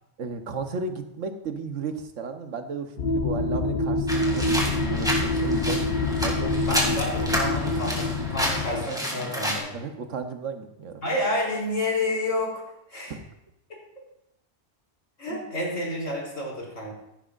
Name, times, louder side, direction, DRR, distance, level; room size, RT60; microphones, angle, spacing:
voice 1, 0.2-5.9 6.2-7.0 9.7-11.0 13.1-13.2 15.3-15.6, right 4 dB, 80° right, 7 dB, 1.3 m, -34 dB
sound 1, 3.0-8.9, left 2 dB, 55° left, 0.6 m, -26 dB
sound 2, 4.1-9.6, equal, 5° right, 2.3 m, -30 dB
voice 2, 6.7-9.7 11.0-12.6 12.9-13.1 15.2-16.9, left 1 dB, 90° left, -3 dB, 4.0 m, -29 dB
15.0 x 11.0 x 2.5 m, 0.85 s
omnidirectional pair, 1.2 m